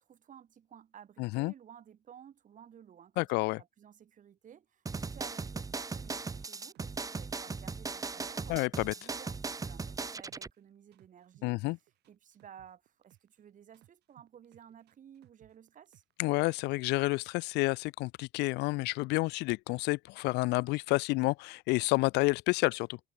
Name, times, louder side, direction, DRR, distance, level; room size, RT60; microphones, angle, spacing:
voice 1, 0.1-3.3 3.6-8.6 9.0-11.6 12.1-16.0, right 9 dB, 50° right, 7.5 m, -55 dB
voice 2, 1.2-1.5 3.2-3.6 8.5-8.9 11.4-11.8 16.2-23.0, left 23 dB, 90° left, 0.4 m, -29 dB
sound 1, 4.9-10.5, right 4 dB, 20° right, 1.1 m, -38 dB
sound 2, 5.7-7.8 8.1-10.6 10.9-13.4 13.7-16.2 16.6-16.9, right 16 dB, 75° right, 6.7 m, -64 dB
cardioid pair, 110°, 17 cm